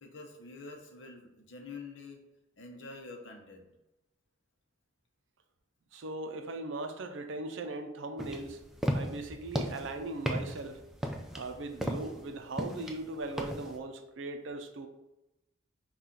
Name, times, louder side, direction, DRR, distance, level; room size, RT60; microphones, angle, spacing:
voice 1, 0.0-2.2 2.6-3.7, left 3 dB, 65° left, 3 dB, 0.7 m, -47 dB
voice 2, 5.9-8.6 8.9-10.8 11.3-14.9, right 2 dB, 75° right, 7 dB, 0.5 m, -39 dB
sound 1, 8.2-13.8, equal, ahead, 0.4 m, -35 dB
5.7 x 2.4 x 3.7 m, 0.95 s
head